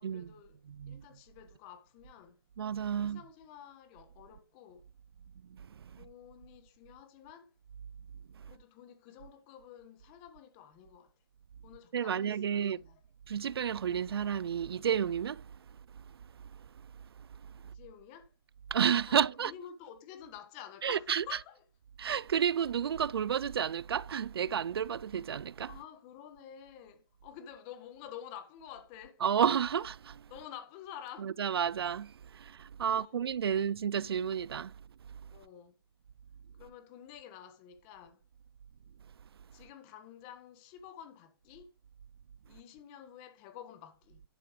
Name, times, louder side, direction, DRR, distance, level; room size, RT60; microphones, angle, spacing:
voice 1, 0.0-0.6 0.9-2.4 2.9-4.8 5.9-7.5 8.4-11.1 11.6-13.0 17.6-18.3 19.1-21.6 25.7-29.2 30.3-31.3 32.8-33.2 33.5-33.6 35.3-35.7 36.6-38.2 39.5-41.7 42.4-44.2, left 9 dB, 25° left, 1.5 m, -50 dB
voice 2, 0.7-1.0 2.6-3.2 5.5-5.9 11.9-12.8 13.3-15.6 15.9-16.0 17.2-17.5 18.7-19.5 20.8-21.2 22.0-25.7 29.2-30.3 31.2-34.7, right 8 dB, 75° right, 0.4 m, -31 dB
11.5 x 8.7 x 3.2 m
hypercardioid pair, 155°, 13 cm